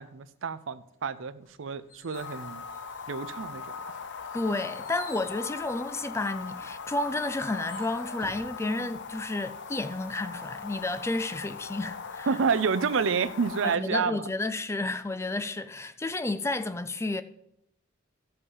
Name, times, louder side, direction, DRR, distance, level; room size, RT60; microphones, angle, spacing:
voice 1, 0.0-2.6 3.1-3.7 8.8-8.9 12.3-14.3, right 5 dB, 70° right, 0.5 m, -29 dB
sound 1, 1.4-3.4 3.8-8.5, left 1 dB, 40° left, 1.9 m, -50 dB
sound 2, 2.1-13.8, left 5 dB, 60° left, 0.7 m, -40 dB
voice 2, 4.3-12.3 13.6-17.2, left 2 dB, 15° left, 0.4 m, -31 dB
14.5 x 5.5 x 5.6 m
head